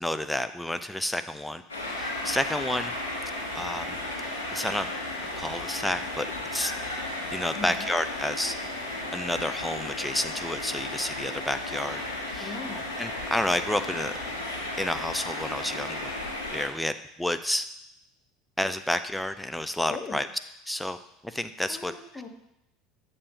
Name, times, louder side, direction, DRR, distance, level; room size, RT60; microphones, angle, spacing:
voice 1, 0.0-1.6 2.0-2.9 3.5-4.0 4.5-4.9 5.4-6.3 6.5-6.7 7.3-8.6 9.1-12.0 12.3-12.6 13.0-14.1 14.8-16.1 16.5-17.7 18.6-20.3 20.7-21.0 21.2-21.9, left 1 dB, 5° left, 10 dB, 0.4 m, -30 dB
sound 1, 1.7-16.7, left 2 dB, 80° left, 1.0 m, -34 dB
voice 2, 7.5-7.9 12.4-12.9 19.9-20.2 21.7-22.3, left 3 dB, 25° left, 2 dB, 0.9 m, -39 dB
6.7 x 2.8 x 5.2 m, 0.80 s
figure-of-eight pair, 70°, 0 cm